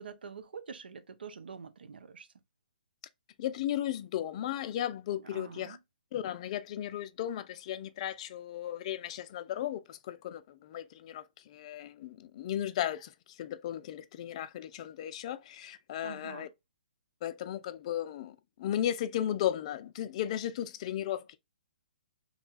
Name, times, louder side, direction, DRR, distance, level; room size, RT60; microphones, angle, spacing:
voice 1, 0.0-2.3 5.2-5.8 16.0-16.5, right 6 dB, 80° right, 0.5 m, -46 dB
voice 2, 3.4-5.8 6.1-16.5 17.2-21.4, left 11 dB, 40° left, 0.4 m, -35 dB
2.9 x 2.3 x 3.9 m
hypercardioid pair, 145°, 5 cm